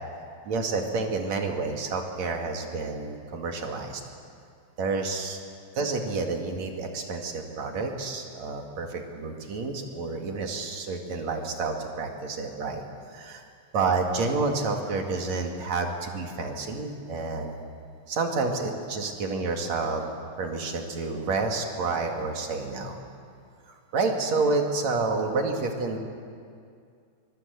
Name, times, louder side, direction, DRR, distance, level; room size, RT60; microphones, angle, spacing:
voice 1, 0.4-4.0 4.8-5.4 5.7-12.8 13.1-13.4 13.7-17.6 18.1-20.0 20.4-23.0 23.7-26.0, right 3 dB, 70° right, 2 dB, 3.4 m, -29 dB
24.0 x 22.5 x 8.2 m, 2.3 s
omnidirectional pair, 3.3 m